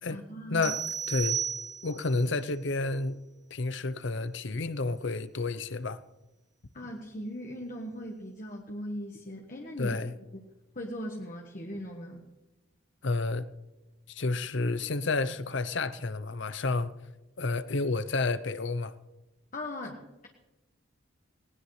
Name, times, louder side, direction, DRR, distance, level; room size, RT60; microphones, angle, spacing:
voice 1, 0.1-0.7 6.7-10.0 10.3-12.2 19.5-20.3, equal, 40° left, 1.3 m, -39 dB
sound 1, 0.6-2.1, right 8 dB, 40° right, 2.4 m, -33 dB
voice 2, 1.1-1.4 1.8-3.2 3.5-6.0 9.8-10.1 13.0-13.5 14.1-16.9 17.4-18.9, left 3 dB, 60° left, 0.7 m, -30 dB
19.0 x 18.5 x 3.3 m
head